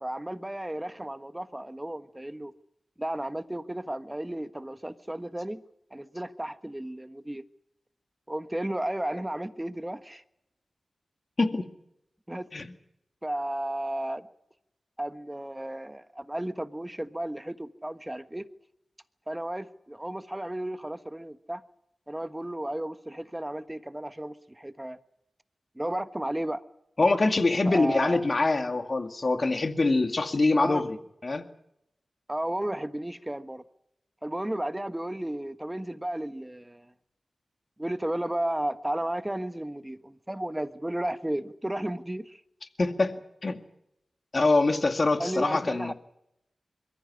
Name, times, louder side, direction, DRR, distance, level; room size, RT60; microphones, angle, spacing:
voice 1, 0.0-2.5 3.0-5.6 5.9-7.4 8.3-10.2 12.3-12.5 13.2-14.3 15.0-18.5 19.3-21.6 22.1-25.0 25.7-26.6 27.6-28.3 30.6-30.8 32.3-33.6 34.2-36.9 37.8-42.4 45.2-45.9, right 1 dB, 15° right, 1.4 m, -33 dB
voice 2, 27.0-30.9 31.2-31.4 42.8-43.2 43.4-43.6 44.3-45.9, left 3 dB, 50° left, 2.2 m, -24 dB
22.5 x 14.5 x 9.8 m
cardioid pair, 45°, 0 cm